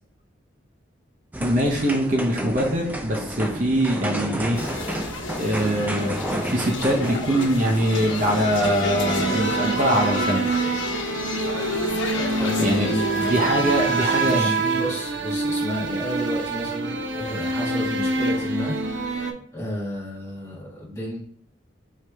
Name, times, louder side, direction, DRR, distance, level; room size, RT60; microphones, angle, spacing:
sound 1, 1.3-9.4, equal, 10° right, 0.3 m, -32 dB
voice 1, 1.4-4.6 5.4-10.4 12.6-12.9 13.2-14.8, equal, 40° right, 0 dB, 0.7 m, -23 dB
sound 2, 4.5-14.4, left 2 dB, 85° left, 1.0 m, -30 dB
sound 3, 8.8-19.3, right 3 dB, 75° right, 0.7 m, -26 dB
voice 2, 12.2-18.7 19.5-21.2, equal, 15° left, -5 dB, 1.5 m, -32 dB
4.7 x 3.1 x 3.4 m, 0.62 s
head